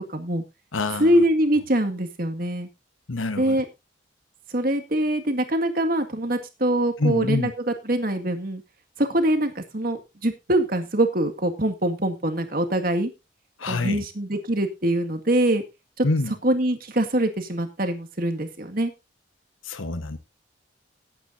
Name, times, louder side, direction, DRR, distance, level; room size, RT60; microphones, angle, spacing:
voice 1, 0.1-0.4 1.0-2.7 3.4-3.6 4.5-7.5 7.8-8.6 9.0-13.1 13.7-15.6 16.0-16.1 16.4-18.9, right 1 dB, 45° right, 2.0 m, -23 dB
voice 2, 0.7-1.2 3.1-3.6 7.0-7.5 13.6-14.0 16.0-16.3 19.6-20.2, left 2 dB, 90° left, 1.2 m, -26 dB
18.0 x 9.0 x 2.7 m
head